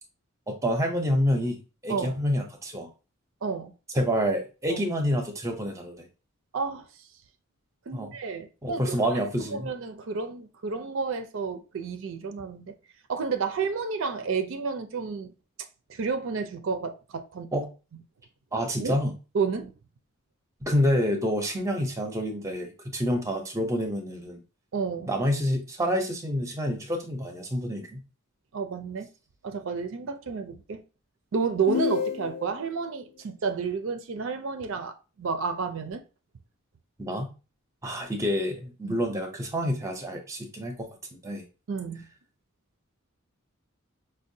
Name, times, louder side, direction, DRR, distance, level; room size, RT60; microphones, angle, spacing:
voice 1, 0.5-2.9 3.9-6.1 7.9-8.2 8.6-9.7 17.5-17.7 18.5-19.1 20.6-24.4 25.1-28.0 37.0-37.3 37.8-40.9 41.2-41.5, equal, 15° right, 0.5 m, -28 dB
voice 2, 3.4-3.7 4.7-4.8 6.5-6.8 7.9-9.1 9.4-12.7 13.1-15.3 15.9-17.5 18.8-19.0 19.3-19.7 24.7-25.1 28.5-29.1 29.4-30.8 31.3-36.0 38.8-39.0 41.7-42.0, right 5 dB, 65° right, 0.4 m, -31 dB
sound 1, 31.7-32.7, left 6 dB, 80° left, 0.4 m, -29 dB
5.2 x 2.2 x 2.6 m
head